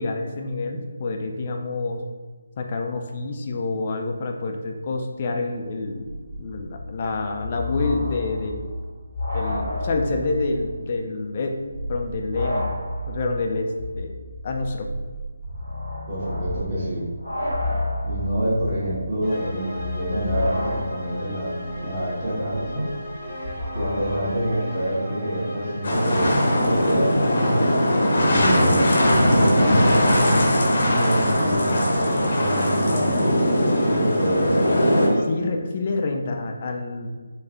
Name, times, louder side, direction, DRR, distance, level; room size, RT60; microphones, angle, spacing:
voice 1, 0.0-2.0 2.6-8.7 9.3-11.6 11.9-12.7 13.1-13.7 14.0-14.1 14.4-14.9 35.2-37.1, left 3 dB, 35° left, 3 dB, 0.3 m, -27 dB
sound 1, 5.5-5.6 5.8-10.7 11.0-11.1 11.6-24.3, left 1 dB, 65° right, 1.4 m, -31 dB
voice 2, 16.1-17.0 18.0-21.5 21.8-22.9 23.7-27.1 28.2-28.9 29.2-30.2 30.8-33.2 33.9-34.7, right 1 dB, 25° right, -8 dB, 1.2 m, -27 dB
sound 2, 19.2-35.2, equal, 5° left, 0.8 m, -36 dB
sound 3, 25.8-35.1, equal, 50° left, 0.7 m, -20 dB
3.6 x 2.2 x 2.9 m, 1.4 s
figure-of-eight pair, 150°, 0 cm